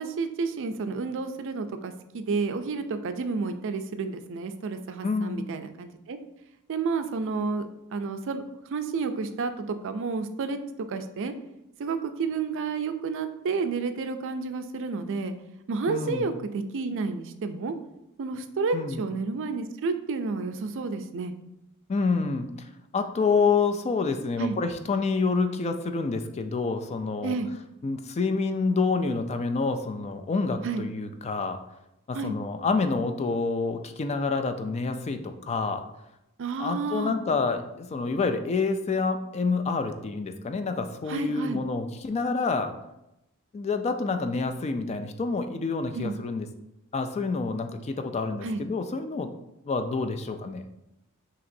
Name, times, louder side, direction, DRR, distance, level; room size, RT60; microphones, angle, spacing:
voice 1, 0.0-6.2 6.7-10.6 10.9-11.3 11.8-15.3 15.7-17.7 18.2-21.3 24.4-24.6 27.2-27.5 30.6-30.8 32.1-32.3 36.4-37.2 41.1-41.6 45.9-46.2 48.4-48.6, right 4 dB, 60° right, 9 dB, 0.4 m, -30 dB
voice 2, 5.0-5.5 15.9-16.3 18.7-19.0 21.9-27.3 27.8-31.6 32.1-35.8 36.6-42.7 43.5-46.5 46.9-49.3 49.7-50.7, left 4 dB, 30° left, 8 dB, 0.3 m, -28 dB
5.8 x 2.9 x 2.6 m, 0.87 s
head